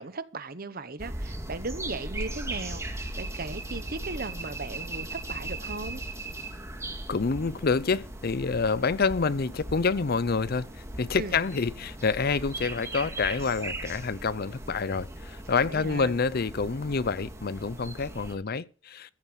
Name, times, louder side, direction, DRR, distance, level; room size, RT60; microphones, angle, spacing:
voice 1, 0.0-6.0 11.2-11.4 15.7-16.2, right 3 dB, 50° right, 1.1 m, -37 dB
sound 1, 1.0-18.3, right 2 dB, 15° right, 2.1 m, -38 dB
voice 2, 7.1-10.7 11.0-19.2, left 4 dB, 50° left, 0.6 m, -27 dB
15.0 x 7.3 x 6.3 m
head